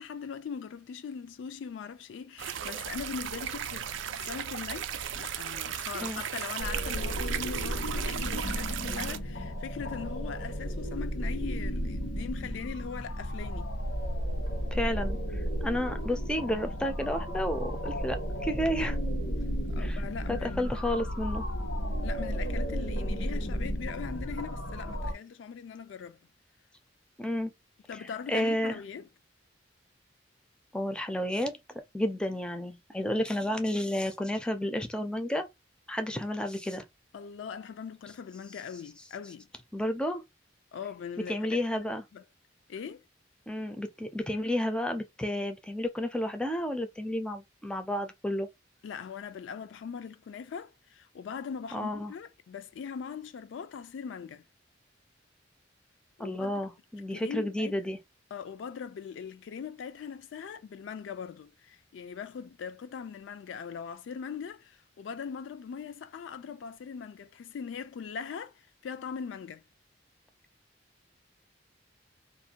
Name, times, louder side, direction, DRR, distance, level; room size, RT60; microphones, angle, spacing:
voice 1, 0.0-13.7 19.7-20.8 22.0-26.2 27.9-29.1 37.1-39.5 40.7-41.9 42.1-42.2 42.7-43.0 48.8-54.4 56.2-56.6 57.1-57.8 58.3-69.6, left 6 dB, 75° left, 0.3 m, -41 dB
sound 1, 2.4-9.2, right 9 dB, 80° right, 0.4 m, -36 dB
sound 2, 6.6-25.1, equal, 90° left, 1.0 m, -33 dB
voice 2, 14.7-15.2 15.6-19.0 19.8-20.0 20.3-21.5 27.2-27.5 28.3-28.8 30.7-31.6 31.9-35.5 35.9-36.8 39.7-40.2 41.3-42.0 43.5-48.5 51.7-52.1 56.2-58.0, left 1 dB, 5° left, 0.4 m, -31 dB
2.5 x 2.1 x 2.8 m
head